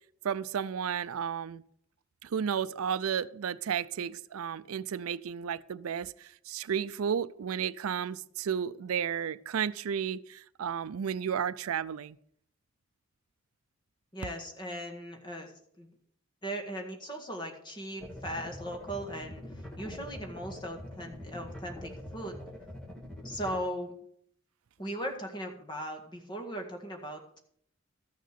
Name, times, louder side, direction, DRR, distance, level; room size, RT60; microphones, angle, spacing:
voice 1, 0.2-1.6 2.2-12.2, right 8 dB, 90° right, 0.4 m, -33 dB
voice 2, 14.1-15.5 15.8-15.9 16.4-22.4 23.2-23.9 24.8-27.4, equal, 20° left, 1.7 m, -38 dB
sound 1, 18.0-23.6, left 1 dB, 5° left, 1.6 m, -44 dB
14.0 x 6.5 x 6.8 m
head